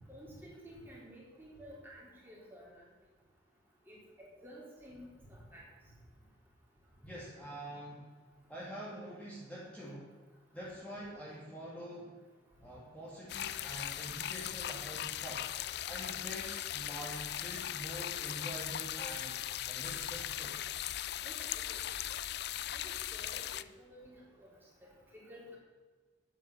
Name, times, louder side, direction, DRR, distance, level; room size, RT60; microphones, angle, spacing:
voice 1, 0.1-2.8 3.9-5.6 21.2-21.8 22.7-24.5 25.1-25.6, equal, 10° right, -5 dB, 4.0 m, -52 dB
voice 2, 7.1-8.1 8.5-10.1 10.5-12.2 12.6-15.5 15.9-19.4 19.7-20.6, equal, 5° left, -8 dB, 2.6 m, -45 dB
sound 1, 13.3-23.6, left 12 dB, 55° left, 0.4 m, -39 dB
11.0 x 9.1 x 7.0 m, 1.4 s
head